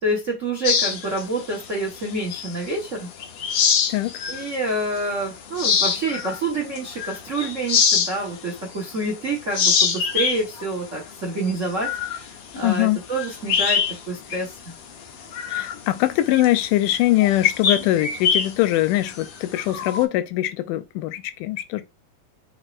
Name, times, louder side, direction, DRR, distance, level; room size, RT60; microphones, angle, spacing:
voice 1, 0.0-3.1 4.3-12.3 12.5-14.7, right 2 dB, 85° right, 0.6 m, -27 dB
sound 1, 0.6-2.8 3.2-4.5 5.0-5.1 5.5-9.1 9.4-14.0 14.3-14.5 14.9-20.0, left 6 dB, 70° left, 1.5 m, -24 dB
voice 2, 12.6-13.0 15.5-21.8, left 15 dB, 85° left, 2.2 m, -22 dB
6.2 x 3.1 x 2.5 m
omnidirectional pair, 3.7 m